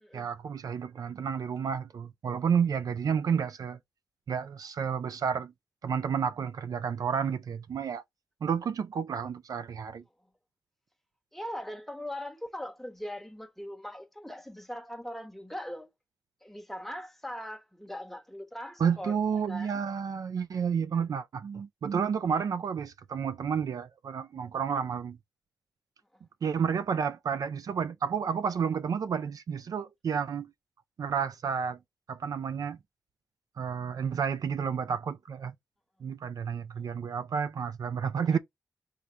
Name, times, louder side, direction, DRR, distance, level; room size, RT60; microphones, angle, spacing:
voice 1, 0.1-3.8 4.3-5.5 5.8-8.0 8.4-10.0 18.8-25.2 26.4-30.5 31.0-31.8 32.1-32.8 33.6-35.5 36.0-38.4, right 7 dB, 70° right, 0.4 m, -31 dB
voice 2, 11.3-15.9 16.4-19.8, equal, 5° left, 1.0 m, -40 dB
3.5 x 3.2 x 3.7 m
cardioid pair, 75°, 6 cm